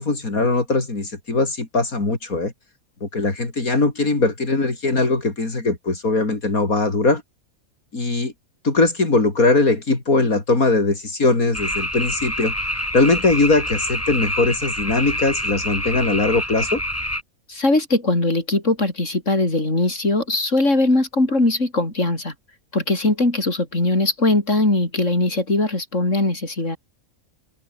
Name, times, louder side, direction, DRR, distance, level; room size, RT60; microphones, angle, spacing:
voice 1, 0.0-2.5 3.0-7.2 7.9-8.3 8.6-12.5 12.9-16.8, left 3 dB, 75° left, 4.5 m, -20 dB
sound 1, 11.5-17.2, left 1 dB, 10° left, 4.1 m, -26 dB
voice 2, 17.5-22.3 22.7-26.8, left 2 dB, 55° left, 6.2 m, -20 dB
open air
omnidirectional pair, 1.5 m